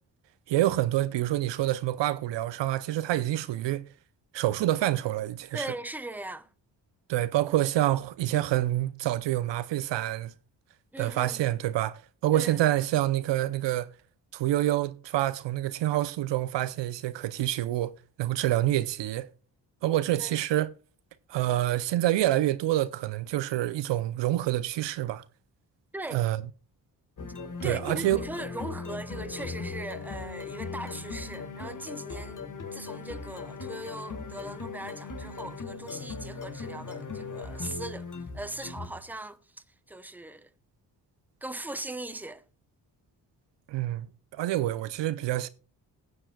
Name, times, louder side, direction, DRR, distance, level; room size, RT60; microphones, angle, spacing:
voice 1, 0.5-3.9 4.3-5.7 7.1-10.3 11.0-13.9 14.3-17.9 18.2-19.3 19.8-20.7 21.3-25.2 26.1-26.4 27.6-28.2 43.7-44.1 44.3-45.5, right 14 dB, 70° right, 0.7 m, -27 dB
voice 2, 5.5-6.5 10.9-11.5 12.3-12.6 20.2-20.3 25.9-26.2 27.6-32.4 32.7-38.1 38.3-39.4 39.9-40.5 41.4-42.4, right 2 dB, 5° right, 0.9 m, -39 dB
sound 1, 27.2-39.1, left 4 dB, 40° left, 1.8 m, -38 dB
20.0 x 7.6 x 2.3 m
supercardioid pair, 50°, 45 cm